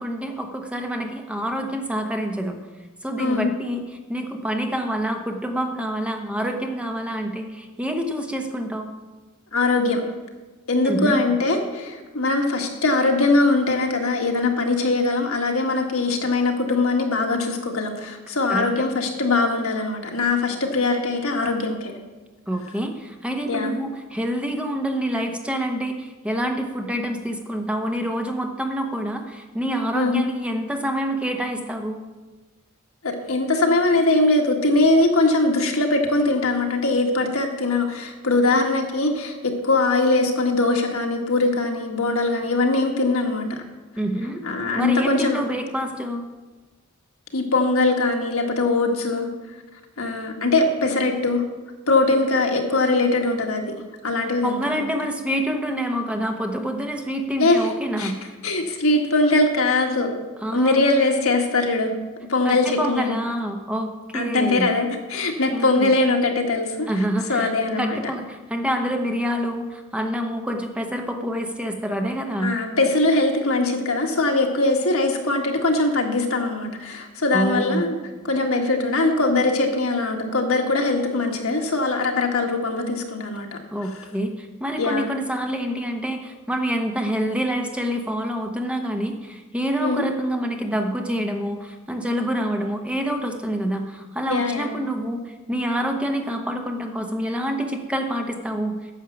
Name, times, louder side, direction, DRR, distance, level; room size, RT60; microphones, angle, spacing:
voice 1, 0.0-2.6 3.0-8.9 10.8-11.2 18.5-18.7 22.5-32.0 44.0-44.4 44.7-46.2 54.4-58.3 60.4-60.8 62.4-64.7 65.5-65.9 66.9-67.5 67.8-72.6 77.3-77.9 83.7-98.8, equal, 5° right, 4 dB, 0.8 m, -27 dB
voice 2, 3.2-3.5 9.5-10.0 10.7-21.9 23.5-23.8 29.9-30.2 33.0-43.5 44.4-45.4 47.3-49.3 50.0-51.4 51.9-53.6 54.0-54.9 57.4-57.7 58.0-58.1 58.4-60.1 60.5-61.9 62.3-63.2 64.1-67.0 67.3-68.0 72.4-78.0 78.3-83.5 84.8-85.1 89.8-90.0 94.3-94.7, left 2 dB, 70° left, 2 dB, 1.6 m, -21 dB
10.0 x 7.2 x 7.0 m, 1.2 s
head